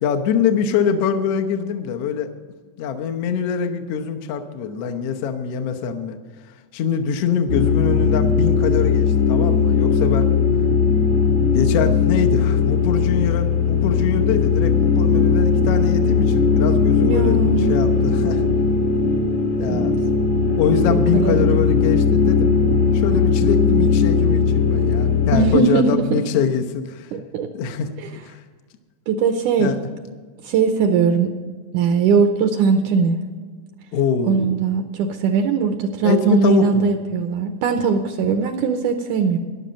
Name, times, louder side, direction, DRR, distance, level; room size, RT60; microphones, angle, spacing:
voice 1, 0.0-2.3 2.8-6.2 6.7-10.3 11.5-18.4 19.6-19.9 20.6-22.5 22.9-27.1 27.5-27.9 28.2-28.4 29.6-29.8 33.9-34.6 36.0-36.9, left 7 dB, 75° left, 6 dB, 1.4 m, -23 dB
sound 1, 7.5-25.6, left 5 dB, 55° left, 1.3 m, -18 dB
voice 2, 17.0-17.8 19.7-19.9 20.9-21.6 25.3-26.2 27.1-27.5 29.1-29.7 30.4-31.3 31.7-33.2 34.2-39.4, right 5 dB, 75° right, 6 dB, 1.9 m, -20 dB
13.5 x 11.0 x 5.2 m, 1.5 s
omnidirectional pair, 4.1 m